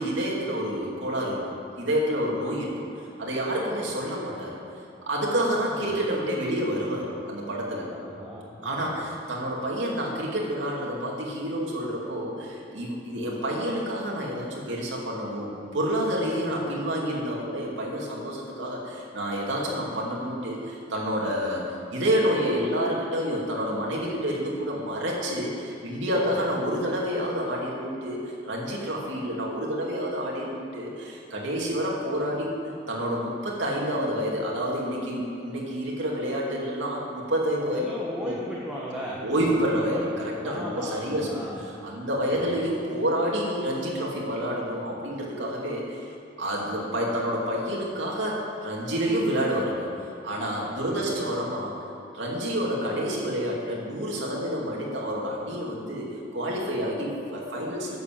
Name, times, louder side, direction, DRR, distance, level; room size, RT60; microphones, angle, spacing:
voice 1, 0.0-1.4 1.8-2.8 3.2-4.6 5.1-7.9 8.6-21.6 21.9-32.6 32.9-37.8 38.2-38.4 39.2-46.0 46.4-49.9 50.2-51.7 52.1-56.1 56.3-58.0, equal, 70° right, -3 dB, 2.5 m, -28 dB
voice 2, 7.9-9.0 26.2-26.4 37.7-40.1 40.4-41.6 42.3-42.5 50.9-51.0, equal, 5° right, -6 dB, 1.4 m, -37 dB
10.5 x 7.1 x 7.6 m, 2.8 s
head